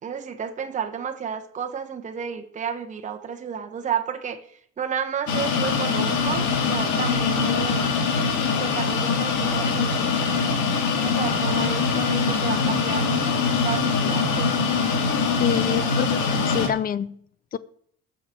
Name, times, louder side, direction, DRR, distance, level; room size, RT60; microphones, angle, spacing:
voice 1, 0.0-7.9 8.6-10.5 11.0-13.1 13.6-14.5, right 7 dB, 25° right, 4 dB, 1.2 m, -32 dB
sound 1, 5.3-16.7, left 5 dB, 75° left, 2.4 m, -23 dB
voice 2, 15.4-17.2 17.5-17.6, left 9 dB, 30° left, 17 dB, 0.5 m, -27 dB
19.0 x 6.8 x 4.5 m, 0.64 s
cardioid pair, 155°, 30 cm